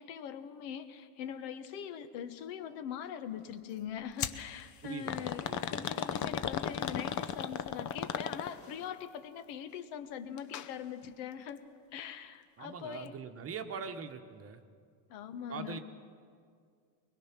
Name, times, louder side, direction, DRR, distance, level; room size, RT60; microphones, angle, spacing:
voice 1, 0.0-11.6 11.9-13.1 15.1-15.8, left 9 dB, 70° left, 9 dB, 1.4 m, -42 dB
sound 1, 4.2-4.4 5.1-8.8 10.4-10.7 11.0-11.1 12.0-12.1, left 9 dB, 40° left, 0.8 m, -35 dB
voice 2, 4.8-5.9 12.6-14.6 15.5-15.8, right 6 dB, 30° right, 7 dB, 1.1 m, -42 dB
22.5 x 21.0 x 6.0 m, 2.2 s
cardioid pair, 135°, 47 cm